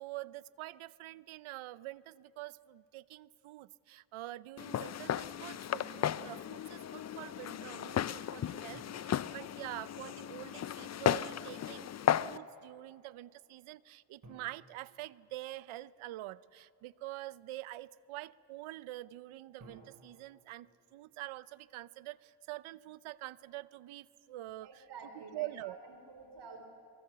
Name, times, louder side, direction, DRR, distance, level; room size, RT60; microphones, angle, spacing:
voice 1, 0.0-11.9 12.2-24.9 25.1-25.8, right 16 dB, 75° right, 19 dB, 0.7 m, -46 dB
Walk footsteps, 4.6-12.4, left 10 dB, 35° left, 0.5 m, -35 dB
sound 1, 8.7-10.4 14.2-16.1 19.6-21.9, right 2 dB, 40° right, 5.8 m, -60 dB
voice 2, 24.6-26.7, right 4 dB, 55° right, 5 dB, 3.7 m, -50 dB
24.0 x 23.0 x 6.8 m, 2.6 s
cardioid pair, 80°, 49 cm